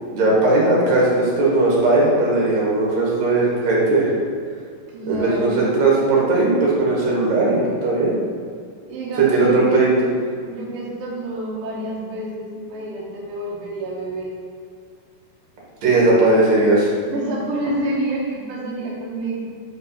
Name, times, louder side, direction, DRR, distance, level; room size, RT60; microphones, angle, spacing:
voice 1, 0.1-4.1 5.1-8.2 9.2-9.9 15.8-16.9, right 2 dB, 55° right, -5 dB, 2.3 m, -18 dB
voice 2, 4.9-5.7 8.9-9.8 10.5-14.3 17.0-19.4, right 1 dB, 75° right, -5 dB, 1.3 m, -28 dB
6.1 x 5.3 x 5.6 m, 2.2 s
omnidirectional pair, 4.7 m